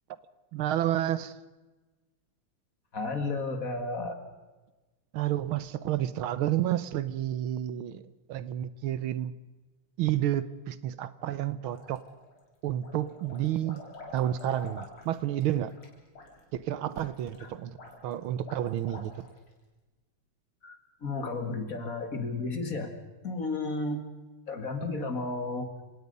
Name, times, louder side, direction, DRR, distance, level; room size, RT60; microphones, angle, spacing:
voice 1, 0.5-1.3 5.1-8.0 8.3-9.3 10.0-12.0 12.6-13.8 14.1-15.7 16.5-17.7 18.0-19.1, right 12 dB, 80° right, 16 dB, 1.7 m, -30 dB
voice 2, 2.9-4.2 17.4-17.5 20.6-22.9 23.2-24.1 24.5-25.7, left 3 dB, 40° left, 7 dB, 2.3 m, -33 dB
sound 1, 11.6-12.4 12.8-19.5, left 2 dB, 75° left, 4.5 m, -48 dB
29.5 x 17.5 x 5.4 m, 1.2 s
omnidirectional pair, 2.3 m